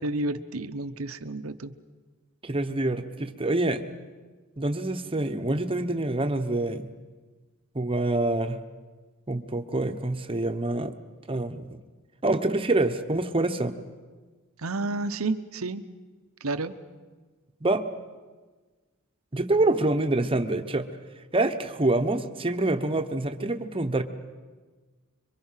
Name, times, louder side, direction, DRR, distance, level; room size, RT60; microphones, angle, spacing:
voice 1, 0.0-1.7 14.6-15.8 16.4-16.7, right 2 dB, 80° right, 11 dB, 1.0 m, -30 dB
voice 2, 2.4-3.8 4.6-6.9 7.7-8.6 9.3-10.9 11.3-11.8 12.2-13.7 17.6-17.8 19.3-20.9 21.3-24.0, right 2 dB, 25° right, 7 dB, 1.1 m, -26 dB
26.5 x 23.5 x 5.7 m, 1.4 s
head